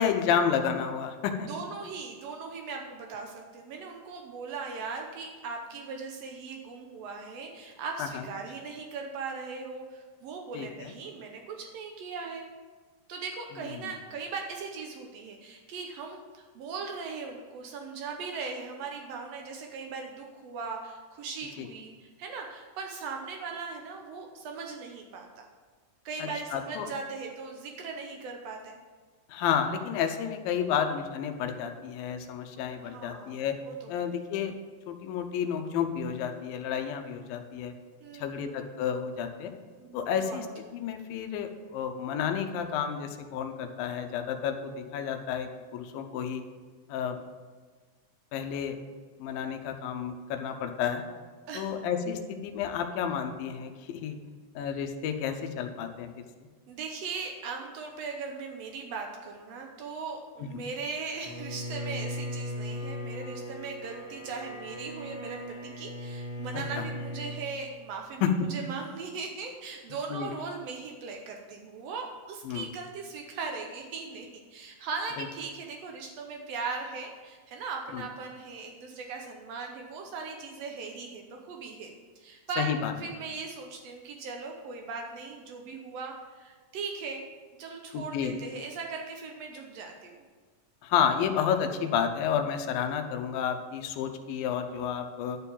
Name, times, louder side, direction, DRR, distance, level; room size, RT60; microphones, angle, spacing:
voice 1, 0.0-1.5 8.0-8.1 10.5-10.9 21.6-21.7 26.2-26.9 29.3-33.6 33.9-34.5 34.9-37.7 38.2-39.5 39.9-46.4 46.9-47.2 48.3-48.8 49.2-51.0 51.5-54.2 54.6-56.1 60.4-60.5 66.8-66.9 68.2-68.3 70.1-70.3 72.5-72.7 75.2-75.3 77.9-78.0 82.6-82.9 87.9-88.4 90.8-95.4, left 8 dB, 90° left, 6 dB, 2.5 m, -31 dB
voice 2, 1.4-12.4 13.1-25.4 26.0-28.8 32.8-34.0 38.0-38.6 39.8-40.4 51.5-51.7 56.7-87.2 87.6-90.1, right 4 dB, 90° right, 2 dB, 1.4 m, -39 dB
Bowed string instrument, 61.2-67.5, equal, 40° left, 0.6 m, -38 dB
11.0 x 4.6 x 7.1 m, 1.4 s
omnidirectional pair, 4.0 m